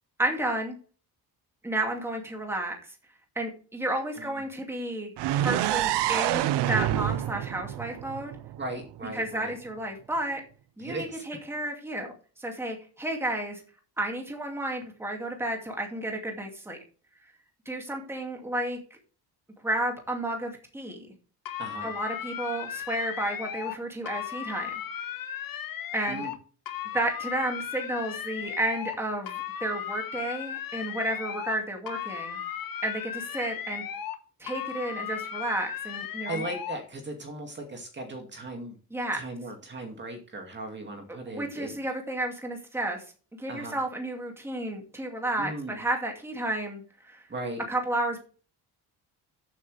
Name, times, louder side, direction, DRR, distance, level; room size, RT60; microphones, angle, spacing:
voice 1, 0.2-0.8 1.6-2.9 3.4-5.1 5.4-8.3 9.1-10.4 10.8-12.1 12.4-13.6 14.0-16.8 17.7-18.8 19.6-21.1 21.8-24.7 25.9-26.3 26.9-32.4 32.8-33.8 34.4-36.4 38.9-39.2 41.3-43.0 43.3-47.3 47.7-48.2, right 1 dB, 5° right, 2 dB, 2.4 m, -32 dB
sound 1, 5.2-9.0, right 13 dB, 90° right, 0.7 m, -27 dB
voice 2, 8.6-9.5 10.8-11.2 21.6-21.9 26.1-26.3 36.3-38.8 39.1-41.7 43.5-43.8 45.4-45.8 47.3-47.6, right 2 dB, 25° right, 3 dB, 2.3 m, -37 dB
sound 2, 21.5-23.8 24.1-26.4 26.7-29.0 29.3-31.6 31.9-34.2 34.5-36.8, left 9 dB, 55° left, 1.5 m, -36 dB
14.0 x 7.9 x 3.4 m, 0.39 s
cardioid pair, 170°, 40 cm